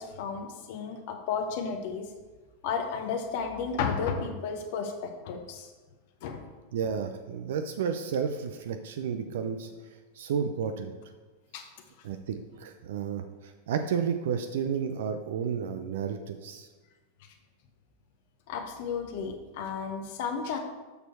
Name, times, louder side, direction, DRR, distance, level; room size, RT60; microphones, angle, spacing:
voice 1, 0.0-2.1 2.6-5.7 6.2-6.4 11.5-11.7 18.5-20.6, left 6 dB, 50° left, 4 dB, 0.8 m, -33 dB
voice 2, 6.7-9.7 10.2-10.9 12.0-16.7, right 7 dB, 55° right, 8 dB, 0.5 m, -32 dB
6.8 x 6.2 x 4.3 m, 1.3 s
figure-of-eight pair, 90°, 0 cm